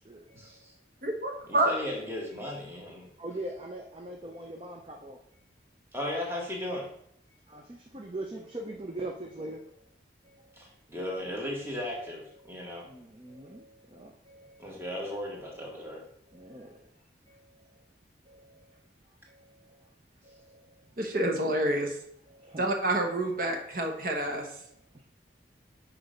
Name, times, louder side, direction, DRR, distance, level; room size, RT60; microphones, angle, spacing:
voice 1, 0.3-0.7 1.5-3.1 5.9-6.9 10.6-12.9 14.6-16.0, left 1 dB, 15° right, -2 dB, 1.5 m, -36 dB
voice 2, 1.0-1.7 21.0-21.9 22.6-24.4, right 1 dB, 50° right, 2 dB, 1.1 m, -28 dB
voice 3, 3.2-5.2 7.5-9.6 12.9-14.6 16.3-16.8 17.3-17.4 18.3-18.5 20.2-20.6 22.3-22.7, right 1 dB, 30° right, 1 dB, 0.6 m, -41 dB
6.0 x 4.5 x 5.1 m, 0.69 s
head